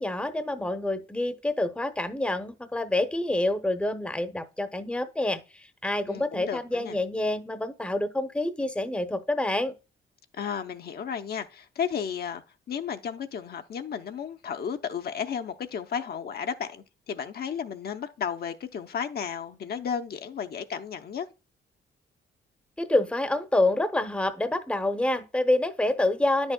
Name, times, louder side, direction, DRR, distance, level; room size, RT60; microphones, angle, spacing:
voice 1, 0.0-9.7 22.8-26.5, left 1 dB, 5° left, 0.8 m, -27 dB
voice 2, 6.1-7.0 10.3-12.4 12.7-21.3, left 7 dB, 50° left, 0.7 m, -33 dB
9.7 x 6.2 x 2.2 m
cardioid pair, 90°, 20 cm